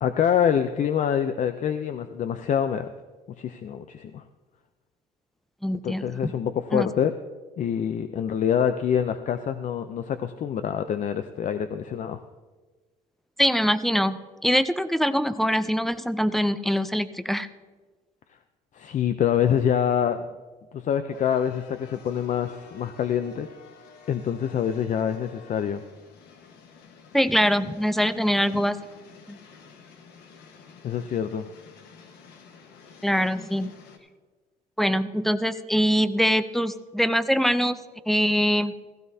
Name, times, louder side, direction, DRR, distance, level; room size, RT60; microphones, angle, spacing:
voice 1, 0.0-2.9 3.4-4.2 5.8-7.1 7.6-12.2 18.7-20.3 20.7-23.5 24.1-25.8 30.8-31.5, left 8 dB, 45° left, 9 dB, 0.5 m, -25 dB
voice 2, 5.6-6.3 6.7-6.9 13.4-17.5 27.1-28.8 29.3-29.4 33.0-33.7 34.8-37.8 38.1-38.8, equal, ahead, 13 dB, 0.5 m, -23 dB
sound 1, 21.1-34.0, left 5 dB, 85° left, 1.4 m, -50 dB
16.0 x 15.0 x 2.8 m, 1.3 s
cardioid pair, 110°, 17 cm